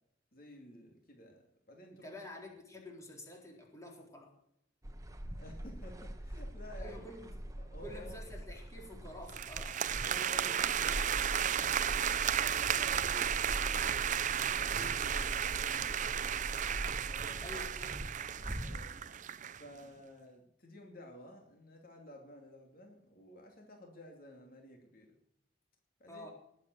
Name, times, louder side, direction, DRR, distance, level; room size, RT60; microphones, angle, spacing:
voice 1, 0.3-2.1 5.3-7.0 7.6-8.2 9.5-9.6 10.0-17.5 18.6-18.9 19.6-25.2 26.0-26.3, left 1 dB, 50° left, 2 dB, 2.7 m, -53 dB
voice 2, 1.9-4.3 6.8-7.3 7.8-9.8 17.4-18.0 26.1-26.3, left 1 dB, 15° left, 0 dB, 4.0 m, -49 dB
sound 1, 4.8-18.9, equal, 20° right, 1.4 m, -43 dB
sound 2, 9.3-19.6, right 9 dB, 45° right, 0.5 m, -34 dB
20.0 x 8.3 x 7.9 m, 0.77 s
head